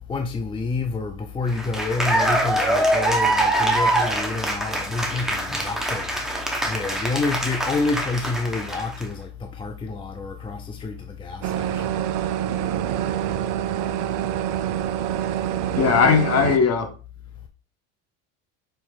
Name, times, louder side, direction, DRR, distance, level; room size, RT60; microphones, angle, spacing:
voice 1, 0.1-12.0, left 3 dB, 15° left, 0.4 m, -28 dB
Cheering / Applause, 1.5-9.0, right 1 dB, ahead, 0.9 m, -24 dB
sound 1, 11.4-16.6, right 11 dB, 60° right, 0.5 m, -26 dB
voice 2, 15.8-16.9, left 6 dB, 45° left, 1.2 m, -18 dB
4.5 x 4.2 x 2.4 m
supercardioid pair, 90°, 36 cm